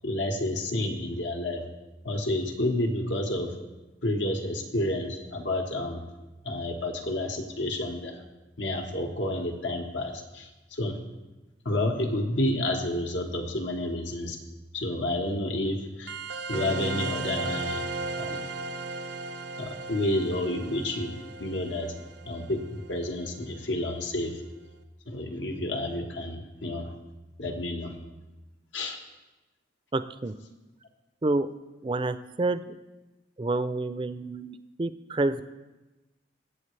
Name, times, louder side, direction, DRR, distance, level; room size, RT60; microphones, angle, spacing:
voice 1, 0.0-1.6 2.0-3.6 4.0-6.0 6.4-8.2 8.6-11.0 11.6-14.4 14.7-16.1 16.5-17.8 18.2-18.5 19.6-21.1 21.4-21.9 22.2-24.4 25.1-26.9 27.4-28.0 28.7-29.0, left 1 dB, 85° left, 2 dB, 1.5 m, -30 dB
sound 1, 16.1-23.2, right 3 dB, 75° right, 0.8 m, -35 dB
voice 2, 29.9-30.3 31.2-31.5 31.8-32.8 33.4-35.4, right 2 dB, 25° right, 12 dB, 0.4 m, -28 dB
23.5 x 7.9 x 3.3 m, 1.1 s
head